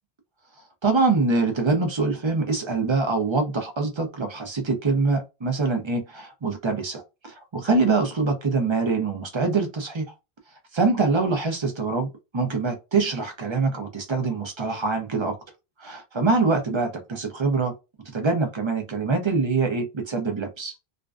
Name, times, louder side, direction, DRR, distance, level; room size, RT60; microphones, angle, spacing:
voice 1, 0.8-10.1 10.7-12.1 12.3-15.3 15.8-17.7 18.1-20.7, right 3 dB, 35° right, 0.5 m, -24 dB
2.5 x 2.1 x 2.4 m
omnidirectional pair, 1.0 m